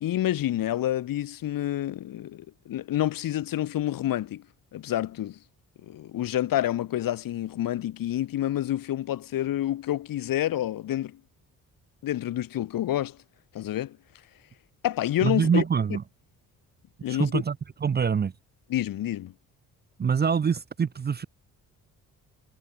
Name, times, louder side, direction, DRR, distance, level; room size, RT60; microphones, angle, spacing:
voice 1, 0.0-4.4 4.7-5.4 5.8-11.2 12.0-13.2 13.5-14.0 14.8-15.6 17.0-17.4 18.7-19.3, left 13 dB, 60° left, 1.1 m, -28 dB
voice 2, 15.2-16.0 17.1-17.6 17.8-18.3 20.0-21.3, right 6 dB, 25° right, 0.6 m, -25 dB
hypercardioid pair, 50°, 39 cm